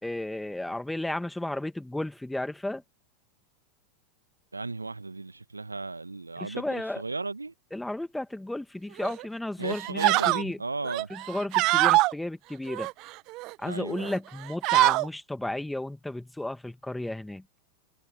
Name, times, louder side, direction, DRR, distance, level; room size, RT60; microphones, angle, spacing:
voice 1, 0.0-2.8 6.4-7.0 7.7-10.6 11.1-12.9 13.6-17.4, left 1 dB, 5° left, 1.9 m, -33 dB
voice 2, 4.5-7.5 9.6-11.1 13.6-14.1, right 3 dB, 80° right, 1.6 m, -35 dB
sound 1, 9.0-9.2 9.7-10.4 10.9-12.1 12.7-13.5 14.0-14.2 14.4-15.1, right 22 dB, 40° right, 0.4 m, -24 dB
figure-of-eight pair, 90°, 0 cm